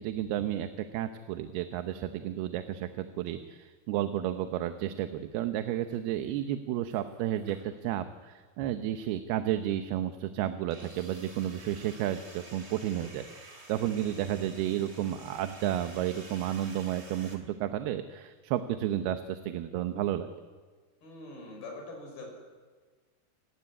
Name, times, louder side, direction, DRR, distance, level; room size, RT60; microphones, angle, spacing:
voice 1, 0.0-20.3, right 11 dB, 85° right, 9 dB, 2.9 m, -32 dB
sound 1, 5.9-6.5 6.9-7.9 8.6-8.7 10.7-17.4, right 2 dB, 20° right, 2.3 m, -51 dB
voice 2, 21.0-22.3, left 2 dB, 70° left, 2 dB, 7.6 m, -43 dB
28.0 x 15.0 x 9.8 m, 1.5 s
omnidirectional pair, 4.4 m